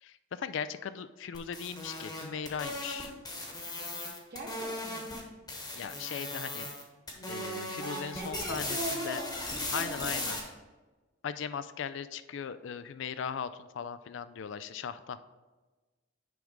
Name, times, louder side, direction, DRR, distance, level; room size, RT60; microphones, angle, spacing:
voice 1, 0.0-3.1 5.8-6.7 7.3-9.2 9.7-10.4 11.2-15.2, left 7 dB, 65° left, 13 dB, 0.3 m, -38 dB
sound 1, 1.3-5.2 5.5-6.8 7.1-10.4, left 1 dB, 20° left, 1.1 m, -37 dB
voice 2, 4.3-5.1 7.8-10.3, right 1 dB, 50° right, -3 dB, 1.9 m, -40 dB
9.2 x 3.6 x 5.1 m, 1.2 s
head